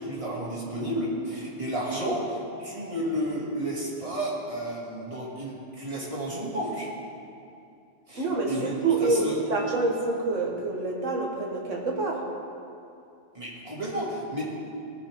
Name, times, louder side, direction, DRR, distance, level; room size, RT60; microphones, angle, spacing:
voice 1, 0.0-6.9 8.1-8.7 9.0-9.4 13.3-14.4, right 1 dB, 25° right, -6 dB, 2.8 m, -32 dB
voice 2, 8.2-12.2, right 3 dB, 80° right, -1 dB, 2.0 m, -27 dB
19.0 x 9.3 x 3.8 m, 2.6 s
omnidirectional pair, 1.3 m